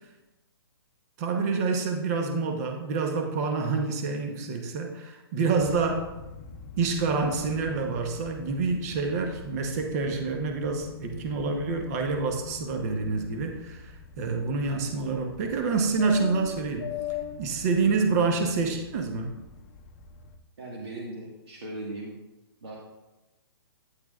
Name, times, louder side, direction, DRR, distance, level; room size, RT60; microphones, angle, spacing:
voice 1, 1.2-6.1 6.8-16.9 17.4-19.4, right 4 dB, 40° right, 4 dB, 0.9 m, -27 dB
sound 1, 5.6-20.4, left 7 dB, 35° left, 0.6 m, -42 dB
voice 2, 20.6-22.1 22.6-22.8, right 2 dB, 75° right, -3 dB, 1.6 m, -38 dB
9.6 x 8.5 x 2.4 m, 1.0 s
hypercardioid pair, 140°, 13 cm